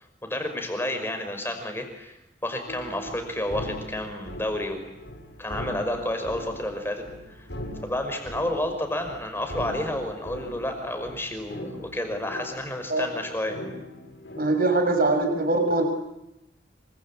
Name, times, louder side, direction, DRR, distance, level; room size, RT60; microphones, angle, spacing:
voice 1, 0.2-2.2 2.4-4.9 5.4-7.5 7.8-13.6, left 1 dB, 15° left, 5 dB, 5.6 m, -30 dB
sound 1, 2.7-14.9, equal, 85° left, 7.6 m, -40 dB
voice 2, 14.3-15.8, right 2 dB, 55° right, 5 dB, 6.6 m, -22 dB
27.0 x 25.0 x 8.7 m, 0.87 s
head